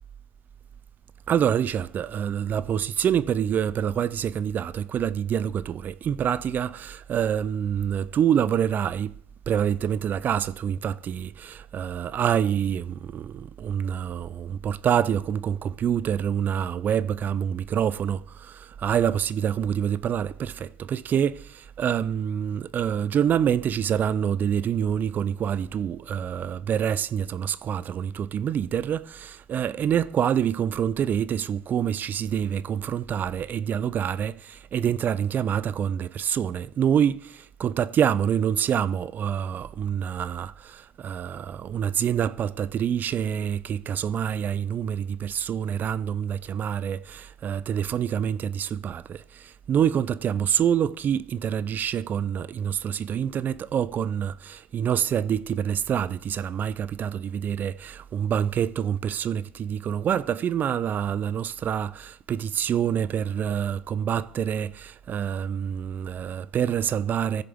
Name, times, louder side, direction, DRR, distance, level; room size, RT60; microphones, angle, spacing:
voice 1, 1.3-9.2 9.5-20.5 20.9-21.4 21.8-67.4, right 9 dB, 40° right, 0.4 m, -26 dB
15.0 x 6.7 x 3.5 m
hypercardioid pair, 80°, 5 cm